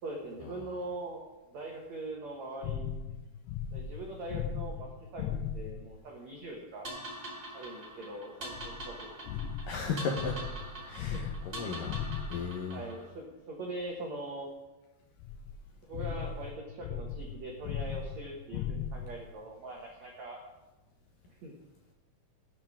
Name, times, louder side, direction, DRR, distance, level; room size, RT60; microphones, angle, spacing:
voice 1, 0.0-3.1 3.7-6.9 7.5-9.1 11.1-11.2 12.7-14.5 15.9-20.4 21.3-21.5, right 2 dB, 75° right, -1 dB, 1.6 m, -42 dB
sound 1, 2.6-6.0 8.5-12.7 15.2-19.3, left 7 dB, 90° left, 2.3 m, -38 dB
sound 2, 6.8-13.1, right 1 dB, 35° right, 1.2 m, -44 dB
voice 2, 9.7-10.4 10.8-12.0 12.3-12.8, left 5 dB, 70° left, 1 dB, 2.1 m, -35 dB
17.5 x 8.3 x 3.6 m, 1.1 s
omnidirectional pair, 5.3 m